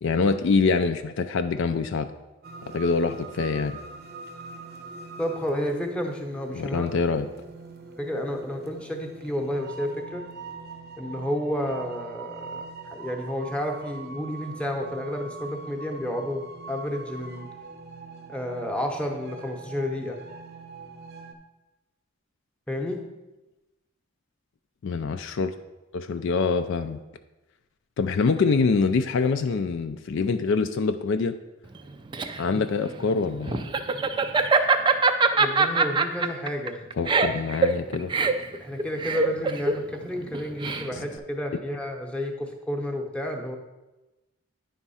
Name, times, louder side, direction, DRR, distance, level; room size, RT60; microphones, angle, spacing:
voice 1, 0.0-2.1 2.6-3.8 6.5-7.3 24.8-25.5 25.9-27.0 28.0-31.4 32.4-33.7 37.0-38.1 40.9-41.0, left 4 dB, 60° left, 9 dB, 0.4 m, -25 dB
sound 1, 2.4-21.3, right 4 dB, 50° right, 0.7 m, -42 dB
voice 2, 5.2-6.9 8.0-10.2 11.0-17.5 18.3-20.2 22.7-23.0 32.5-32.6 35.3-36.8 38.3-43.6, equal, 5° left, 1 dB, 0.8 m, -31 dB
Laughter, 31.8-41.2, right 4 dB, 20° right, 0.4 m, -23 dB
9.7 x 3.6 x 5.5 m, 1.1 s
head